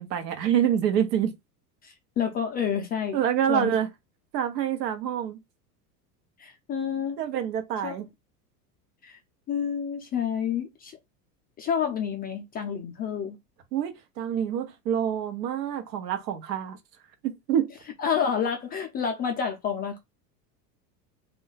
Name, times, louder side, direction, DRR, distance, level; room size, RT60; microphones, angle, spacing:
voice 1, 0.0-1.3 3.1-3.9 4.3-5.4 7.2-8.1 13.7-16.8 17.2-17.7, right 9 dB, 80° right, 1.0 m, -26 dB
voice 2, 1.8-3.2 3.5-3.7 6.4-7.2 7.8-7.9 9.0-9.2 9.5-11.0 11.6-13.4 18.0-20.0, left 7 dB, 20° left, 0.3 m, -29 dB
2.4 x 2.2 x 3.8 m
hypercardioid pair, 110°, 49 cm